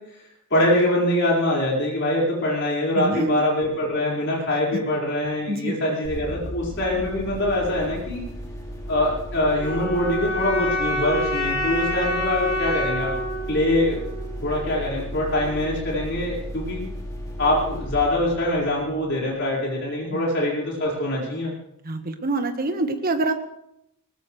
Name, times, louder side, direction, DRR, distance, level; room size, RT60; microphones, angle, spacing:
voice 1, 0.5-8.2 8.9-13.1 13.5-14.1 14.4-16.9 17.4-21.5, left 1 dB, 55° left, -3 dB, 5.3 m, -24 dB
voice 2, 3.0-3.4 5.5-5.8 20.1-20.2 21.8-23.3, right 2 dB, 40° right, 6 dB, 1.5 m, -25 dB
sound 1, 6.0-19.5, equal, 15° left, 2.6 m, -35 dB
sound 2, 9.6-14.6, equal, 75° left, 6.9 m, -27 dB
20.5 x 19.0 x 3.3 m, 0.81 s
head